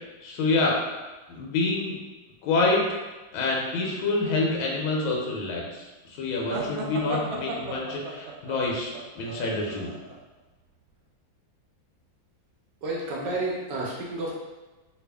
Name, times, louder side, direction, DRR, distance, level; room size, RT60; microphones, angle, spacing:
voice 1, 0.2-0.8 1.3-2.0 2.4-2.8 3.3-9.9, left 3 dB, 85° left, -2 dB, 1.4 m, -27 dB
sound 1, 6.5-10.2, right 3 dB, 90° right, 0.7 m, -35 dB
voice 2, 12.8-14.3, right 2 dB, 70° right, -3 dB, 1.2 m, -30 dB
3.5 x 2.3 x 3.3 m, 1.2 s
omnidirectional pair, 2.2 m